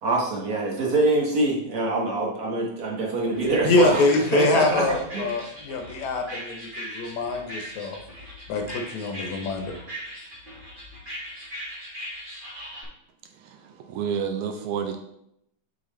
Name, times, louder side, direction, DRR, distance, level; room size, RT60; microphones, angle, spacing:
voice 1, 0.0-4.1 4.3-4.8 5.1-5.3, right 2 dB, 50° right, -2 dB, 1.1 m, -24 dB
sound 1, 3.3-12.8, equal, 25° right, 1.4 m, -39 dB
voice 2, 3.6-8.0 8.5-9.7, left 3 dB, 70° left, 4 dB, 2.2 m, -24 dB
voice 3, 13.3-15.0, right 7 dB, 75° right, 5 dB, 1.9 m, -30 dB
7.8 x 5.6 x 3.2 m, 0.77 s
omnidirectional pair, 3.5 m